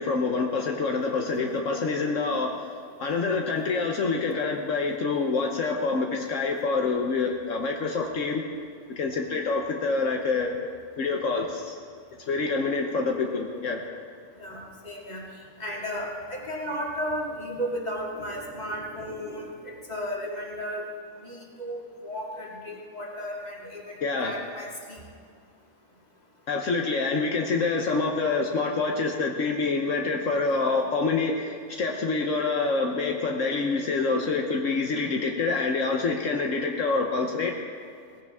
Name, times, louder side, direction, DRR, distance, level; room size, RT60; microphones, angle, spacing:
voice 1, 0.0-2.6 3.0-8.4 9.0-10.5 11.0-11.7 12.3-13.8 24.0-24.3 26.5-37.5, left 4 dB, 75° left, 1 dB, 1.4 m, -26 dB
voice 2, 14.4-15.2 15.6-20.9 21.2-25.0 30.6-30.7, equal, 30° left, -3 dB, 2.4 m, -34 dB
19.0 x 16.0 x 3.6 m, 2.1 s
omnidirectional pair, 1.3 m